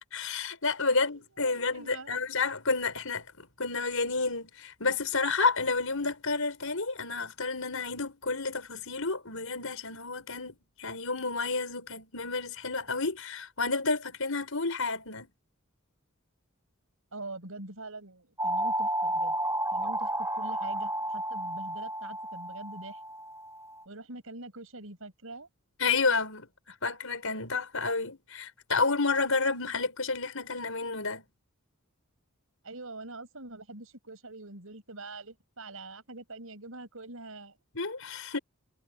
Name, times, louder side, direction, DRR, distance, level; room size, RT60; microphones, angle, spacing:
voice 1, 0.1-15.3 25.8-26.5 26.8-31.2 37.7-38.4, left 4 dB, 70° left, 5.8 m, -30 dB
voice 2, 0.9-2.1 17.1-19.4 19.7-20.1 20.3-23.0 23.8-25.5 32.6-37.6, right 2 dB, 70° right, 6.7 m, -44 dB
sound 1, 18.4-23.8, right 1 dB, 15° right, 1.8 m, -32 dB
head